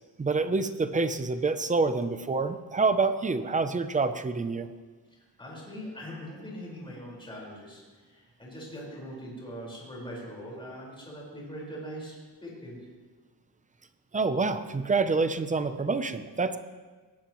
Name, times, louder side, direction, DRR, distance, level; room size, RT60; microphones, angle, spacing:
voice 1, 0.2-4.7 14.1-16.6, right 4 dB, 20° right, 10 dB, 0.6 m, -27 dB
voice 2, 5.1-12.8, equal, 10° left, -4 dB, 4.8 m, -42 dB
20.0 x 17.5 x 3.1 m, 1.4 s
cardioid pair, 165°, 42 cm